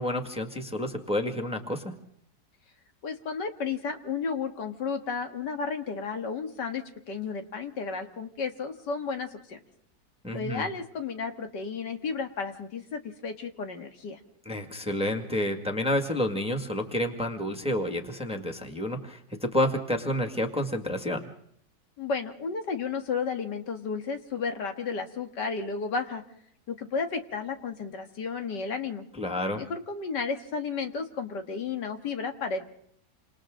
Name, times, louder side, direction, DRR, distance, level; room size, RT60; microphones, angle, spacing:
voice 1, 0.0-2.0 10.2-10.6 14.5-21.2 29.2-29.6, left 1 dB, 5° right, 2 dB, 1.8 m, -29 dB
voice 2, 3.0-9.6 10.3-14.2 22.0-26.2 26.7-29.1 29.6-32.6, left 5 dB, 70° left, 6 dB, 2.3 m, -33 dB
28.5 x 26.5 x 3.8 m, 0.67 s
omnidirectional pair, 1.9 m